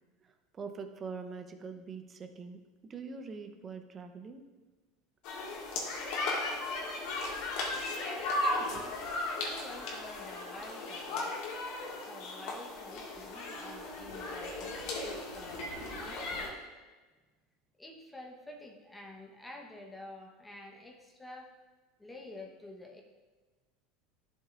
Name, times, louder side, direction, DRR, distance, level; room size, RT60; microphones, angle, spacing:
voice 1, 0.2-2.6 2.9-4.4, right 5 dB, 30° right, 7 dB, 0.8 m, -43 dB
sound 1, 5.2-16.5, left 2 dB, 65° left, 1.9 m, -36 dB
voice 2, 8.4-9.0 9.4-11.4 12.0-16.6 17.8-21.5 22.0-23.0, left 1 dB, 10° left, 0 dB, 1.1 m, -49 dB
11.5 x 6.6 x 2.5 m, 1.3 s
supercardioid pair, 105°, 0 cm